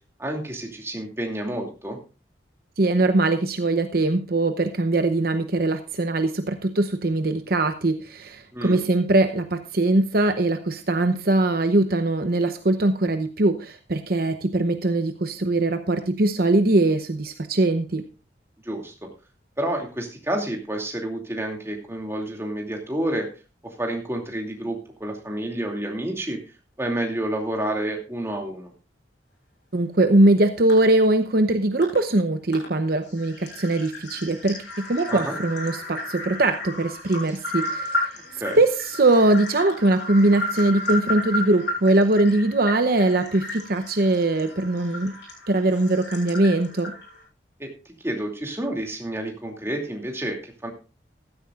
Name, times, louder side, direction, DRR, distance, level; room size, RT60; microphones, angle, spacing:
voice 1, 0.2-2.0 8.5-8.8 18.6-19.1 19.6-23.3 23.6-26.4 26.8-28.7 35.1-35.3 38.4-38.6 47.6-47.7 48.0-50.7, right 1 dB, 15° right, 1 dB, 2.6 m, -29 dB
voice 2, 2.8-18.0 29.7-37.9 38.6-45.1 45.5-46.9, right 2 dB, 55° right, 8 dB, 0.8 m, -21 dB
sound 1, 30.7-30.8 31.8-32.0 32.5-32.7 33.0-47.2, left 1 dB, 75° left, 7.7 m, -33 dB
15.0 x 12.5 x 2.4 m, 0.32 s
head